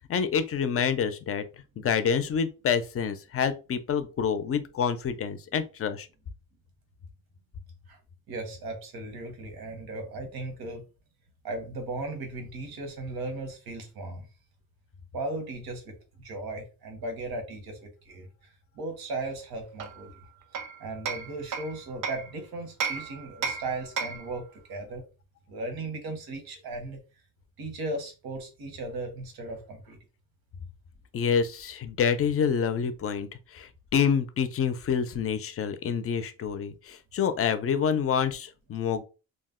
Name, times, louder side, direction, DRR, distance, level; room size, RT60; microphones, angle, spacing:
voice 1, 0.1-1.4 1.8-6.1 31.1-39.0, left 7 dB, 40° left, 0.4 m, -27 dB
voice 2, 8.3-10.8 11.4-14.3 15.1-20.1 20.8-25.0 25.5-27.0 27.6-30.0, right 2 dB, 90° right, 1.0 m, -37 dB
Hammer, 19.8-22.3 22.8-24.4, right 5 dB, 60° right, 0.5 m, -34 dB
2.4 x 2.0 x 3.6 m
cardioid pair, 115°, 36 cm